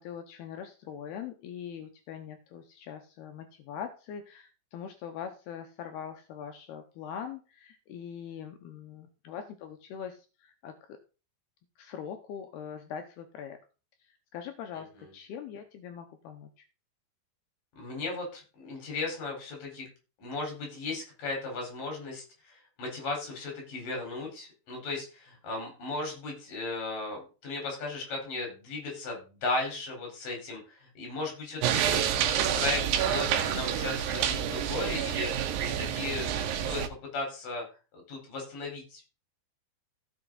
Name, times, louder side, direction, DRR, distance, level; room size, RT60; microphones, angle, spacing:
voice 1, 0.0-11.0 11.8-13.6 14.0-16.5, left 8 dB, 80° left, 6 dB, 2.6 m, -42 dB
voice 2, 17.8-19.9 20.2-32.2 32.5-36.8 37.1-37.6 37.9-39.0, left 3 dB, 50° left, 1 dB, 5.8 m, -36 dB
sound 1, 31.6-36.9, right 9 dB, 80° right, 2.7 m, -28 dB
15.5 x 5.9 x 3.9 m, 0.34 s
omnidirectional pair, 5.2 m